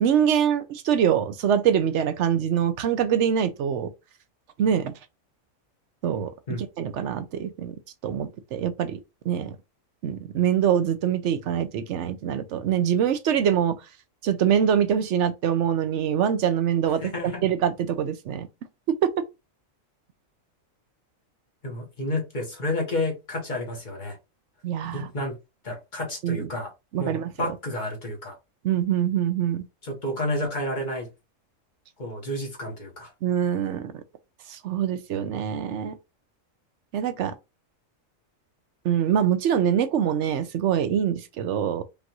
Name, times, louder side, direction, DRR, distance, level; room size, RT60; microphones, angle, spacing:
voice 1, 0.0-3.9 4.6-4.9 6.0-6.3 6.8-7.7 8.0-9.0 9.3-9.6 10.0-13.8 14.2-17.1 17.4-18.5 18.9-19.1 24.6-25.1 26.2-26.5 26.9-27.3 28.6-29.6 33.2-33.9 34.5-36.0 36.9-37.3 38.8-41.8, right 9 dB, 65° right, 0.9 m, -24 dB
voice 2, 17.0-17.4 21.6-24.2 24.9-25.3 25.6-26.7 27.0-28.4 29.8-31.1 32.0-33.1, left 1 dB, 35° left, 1.4 m, -30 dB
5.2 x 2.5 x 2.9 m
omnidirectional pair, 1.4 m